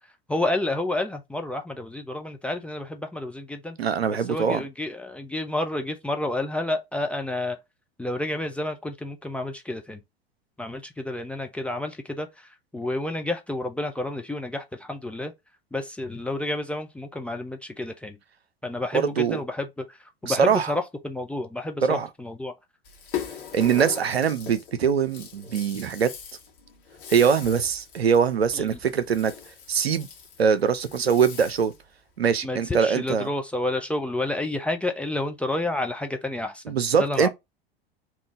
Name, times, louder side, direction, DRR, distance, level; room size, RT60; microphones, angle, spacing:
voice 1, 0.3-3.8 4.3-7.6 8.0-10.0 10.6-15.3 15.7-18.2 18.6-20.0 20.2-22.5 28.5-28.8 32.4-37.3, left 2 dB, 5° left, 0.3 m, -30 dB
voice 2, 3.8-4.6 18.9-19.4 20.2-20.7 21.8-22.1 23.5-26.1 27.1-29.3 29.7-30.1 30.4-31.7 32.2-33.3 36.7-37.3, right 7 dB, 80° right, 0.5 m, -22 dB
Rattle (instrument), 22.8-31.8, left 8 dB, 60° left, 1.2 m, -40 dB
3.7 x 2.4 x 3.7 m
figure-of-eight pair, 80°, 31 cm